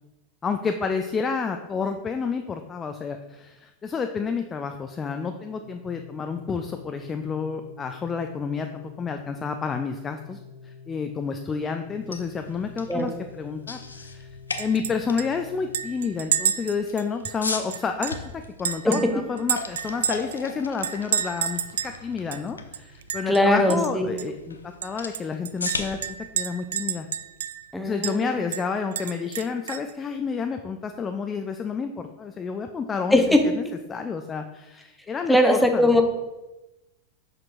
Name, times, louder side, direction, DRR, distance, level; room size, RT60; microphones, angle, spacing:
voice 1, 0.4-10.4 10.6-14.3 14.6-27.1 27.8-35.9, left 5 dB, 20° left, 6 dB, 0.4 m, -30 dB
Organ, 5.6-16.5, left 6 dB, 50° left, 1.0 m, -47 dB
sound 1, 11.9-27.8, left 4 dB, 75° left, 0.6 m, -39 dB
Chink clink, 14.6-14.9 15.2-15.3 15.7-18.2 18.6-20.4 20.8-22.0 22.3-22.4 22.7-23.4 23.7-23.9 24.2-24.3 24.8-27.7 28.0-28.2 28.5-29.9, right 8 dB, 60° right, 0.3 m, -29 dB
voice 2, 18.8-19.2 23.3-24.2 27.7-28.4 33.1-33.4 35.3-36.0, left 1 dB, ahead, 4 dB, 0.8 m, -20 dB
7.3 x 6.0 x 2.6 m, 1.0 s
figure-of-eight pair, 90°, 0 cm